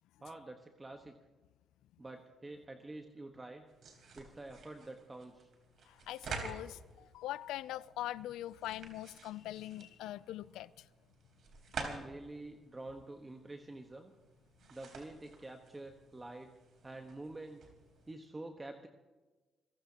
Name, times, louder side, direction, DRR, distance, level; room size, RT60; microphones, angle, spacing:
voice 1, 0.2-1.2 2.0-3.6 4.1-5.5 11.8-14.1 14.7-16.5 16.8-17.6 18.1-18.9, right 2 dB, 20° right, 1.3 m, -47 dB
sound 1, 3.7-18.1, right 4 dB, 65° right, 3.9 m, -50 dB
voice 2, 5.9-10.9, left 14 dB, 90° left, 0.4 m, -42 dB
26.0 x 15.5 x 2.9 m
cardioid pair, 90°, 0 cm